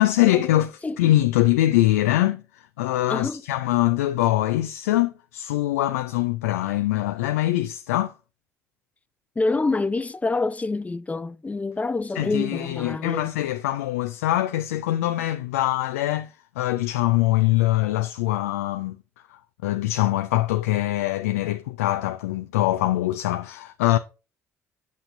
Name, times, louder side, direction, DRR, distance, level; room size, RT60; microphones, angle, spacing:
voice 1, 0.0-8.1 12.1-19.0 19.6-24.0, left 15 dB, 75° left, 0.4 m, -23 dB
voice 2, 3.1-3.4 9.4-13.3, left 3 dB, 20° left, 0.6 m, -26 dB
8.2 x 6.5 x 2.7 m
hypercardioid pair, 55°, 8 cm